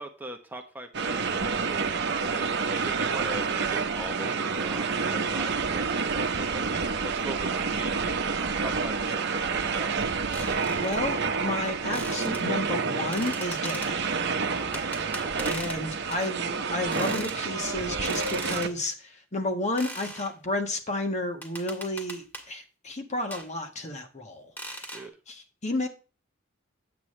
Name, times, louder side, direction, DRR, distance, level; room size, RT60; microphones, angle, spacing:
voice 1, 0.0-9.9 14.7-14.9 15.2-15.5 24.9-25.1, right 1 dB, 10° right, 3 dB, 0.9 m, -40 dB
sound 1, 0.9-18.7, right 5 dB, 60° right, 0.9 m, -29 dB
sound 2, 10.3-11.0 11.9-12.4 13.1-13.9 14.7-15.8 16.1-16.3 16.9-17.4 18.1-18.7 19.8-20.3 21.4-22.5 23.3-23.5 24.6-25.1, equal, 10° left, 1.9 m, -39 dB
voice 2, 10.7-14.1 15.5-25.0 25.3-25.9, left 1 dB, 35° left, 4 dB, 1.5 m, -32 dB
8.6 x 8.2 x 3.2 m, 0.34 s
head